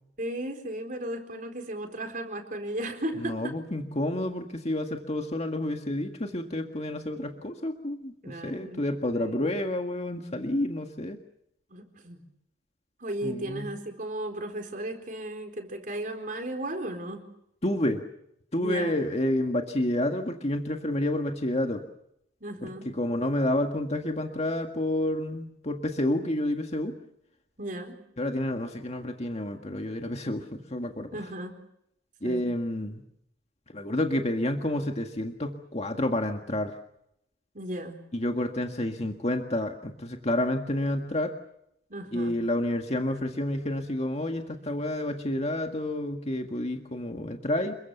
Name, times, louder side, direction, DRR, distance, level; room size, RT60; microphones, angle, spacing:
voice 1, 0.2-3.6 8.2-8.8 9.1-9.5 11.7-12.2 13.0-17.2 18.6-19.0 22.4-22.9 27.6-28.0 31.1-31.6 32.2-32.4 37.5-38.0 41.9-42.3, right 1 dB, 45° right, 4 dB, 4.2 m, -35 dB
voice 2, 3.2-11.2 13.2-13.7 17.6-18.0 18.5-21.8 22.6-27.0 28.2-31.1 32.2-33.0 33.7-36.7 38.1-41.3 42.1-47.8, left 1 dB, 35° left, 4 dB, 1.8 m, -29 dB
28.5 x 23.0 x 6.9 m, 0.76 s
head